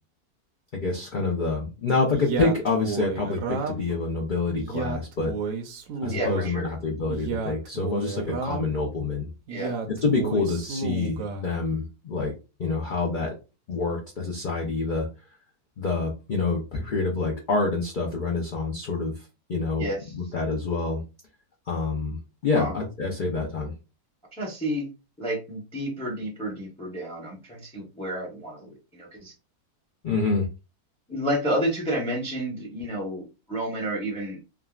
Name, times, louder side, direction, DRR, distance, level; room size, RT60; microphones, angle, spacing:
voice 1, 0.7-5.4 6.0-9.3 10.0-12.3 12.6-13.3 13.7-15.1 15.8-19.1 19.5-19.9 20.1-21.0 21.7-22.2 22.4-23.7 30.0-30.5, left 3 dB, 60° left, -1 dB, 0.5 m, -27 dB
Male speech man speaking, 2.1-4.0 4.5-6.5 7.1-8.8 9.5-11.5, right 4 dB, 70° right, 0.9 m, -32 dB
voice 2, 6.1-6.7 9.5-9.8 19.8-20.1 22.5-22.7 24.3-24.9 25.2-29.3 31.1-34.4, right 1 dB, 5° left, -2 dB, 0.6 m, -30 dB
3.5 x 2.1 x 2.3 m, 0.29 s
omnidirectional pair, 1.6 m